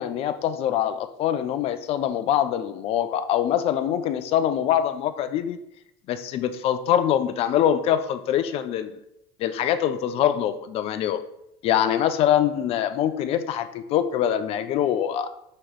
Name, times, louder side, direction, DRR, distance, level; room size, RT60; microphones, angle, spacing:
voice 1, 0.0-5.6 6.1-8.9 9.4-11.2 11.6-15.3, left 10 dB, 50° left, 11 dB, 0.5 m, -24 dB
4.6 x 3.2 x 3.6 m, 0.79 s
hypercardioid pair, 90°, 13 cm